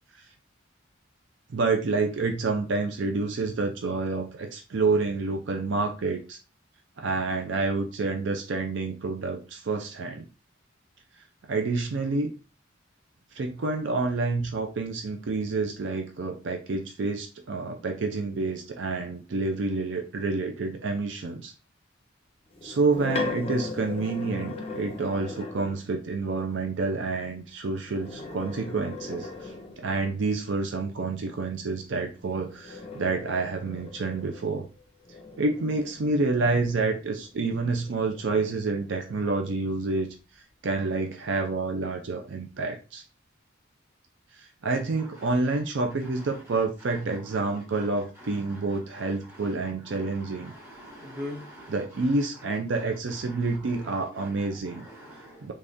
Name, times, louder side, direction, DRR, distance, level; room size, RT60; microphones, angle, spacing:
voice 1, 1.5-6.4 7.0-10.3 11.5-12.3 13.3-21.5 22.6-34.7 35.4-40.1 40.6-43.0 44.3-50.5 51.7-54.9 55.4-55.5, right 3 dB, 65° right, 4 dB, 0.4 m, -28 dB
sound 1, 22.5-25.9 27.8-30.1 32.1-37.3 37.8-39.6, left 3 dB, 30° left, 0.6 m, -39 dB
voice 2, 50.3-51.7 53.3-53.4 54.2-54.3 54.7-55.5, left 1 dB, 15° right, -4 dB, 1.5 m, -41 dB
3.5 x 3.2 x 2.6 m, 0.33 s
head